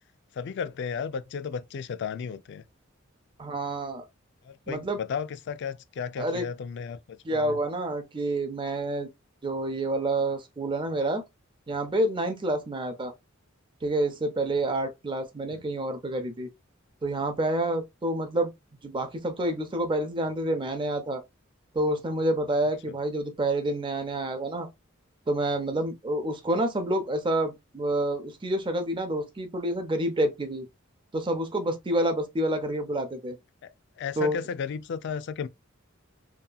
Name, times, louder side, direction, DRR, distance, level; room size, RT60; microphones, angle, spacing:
voice 1, 0.3-2.6 4.4-7.6 15.5-15.6 22.9-23.0 33.6-35.5, left 6 dB, 60° left, 0.3 m, -34 dB
voice 2, 3.4-4.0 4.7-5.0 6.2-6.4 7.2-9.1 9.4-11.2 11.7-13.1 13.8-16.5 17.0-18.5 18.8-21.2 21.7-24.7 25.3-30.7 31.1-33.4 34.2-34.4, right 1 dB, 25° right, 0.6 m, -28 dB
2.8 x 2.4 x 2.3 m
head